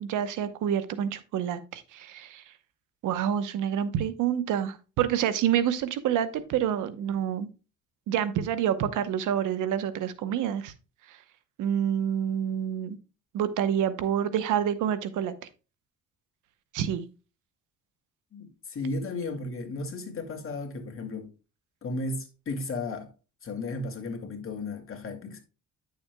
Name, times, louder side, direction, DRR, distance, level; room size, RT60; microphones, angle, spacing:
voice 1, 0.0-2.4 3.0-7.5 8.1-10.7 11.6-13.0 13.3-15.3 16.7-17.1, right 9 dB, 85° right, 0.9 m, -28 dB
voice 2, 18.3-21.3 21.8-23.1 23.4-25.4, left 2 dB, 45° left, 2.2 m, -34 dB
10.0 x 6.9 x 2.2 m
cardioid pair, 90°, 30 cm